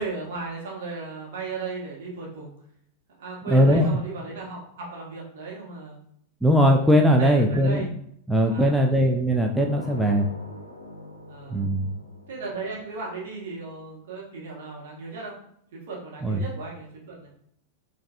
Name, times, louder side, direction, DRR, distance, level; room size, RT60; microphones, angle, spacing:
voice 1, 0.0-2.5 3.2-6.0 7.2-7.9 8.5-9.0 11.3-11.7 12.3-15.3 15.7-17.3, right 3 dB, 55° right, -3 dB, 1.2 m, -36 dB
voice 2, 3.5-4.0 6.4-7.9 8.3-10.3 11.5-11.9 16.2-16.4, equal, 5° right, 1 dB, 0.3 m, -20 dB
sound 1, 9.5-14.2, left 1 dB, 85° left, 0.4 m, -45 dB
4.6 x 2.5 x 2.3 m, 0.70 s
figure-of-eight pair, 90°, 0 cm